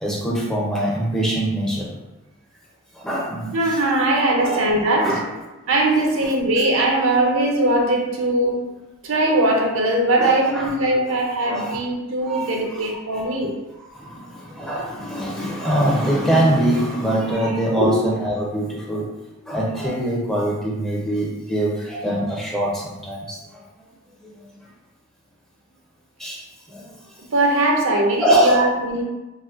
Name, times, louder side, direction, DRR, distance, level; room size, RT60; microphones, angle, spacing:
voice 1, 0.0-1.9 3.0-3.8 4.4-4.7 5.0-5.2 6.0-6.1 10.2-10.7 11.4-11.8 12.3-13.5 13.9-19.1 19.5-23.6 24.2-24.3 26.2-26.4 26.7-26.9 28.2-28.7, right 1 dB, 5° left, -4 dB, 0.4 m, -23 dB
voice 2, 3.5-5.1 5.7-8.6 9.0-13.6 17.8-17.9 27.3-29.0, right 1 dB, 70° right, 1 dB, 0.5 m, -20 dB
4.0 x 2.1 x 2.4 m, 1.1 s
head